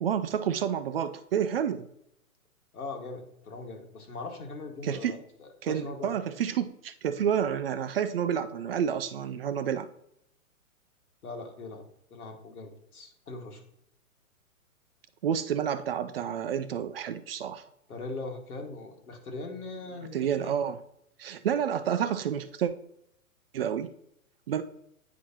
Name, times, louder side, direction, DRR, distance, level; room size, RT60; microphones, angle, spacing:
voice 1, 0.0-1.9 4.8-5.2 5.6-9.9 15.2-17.6 20.1-20.8 21.2-22.7 23.5-23.9 24.5-24.6, right 8 dB, 45° right, 11 dB, 0.4 m, -29 dB
voice 2, 2.7-6.2 11.2-11.8 12.1-13.6 17.9-20.5, left 3 dB, 80° left, 2 dB, 1.8 m, -40 dB
9.2 x 4.7 x 2.8 m, 0.76 s
hypercardioid pair, 135°, 43 cm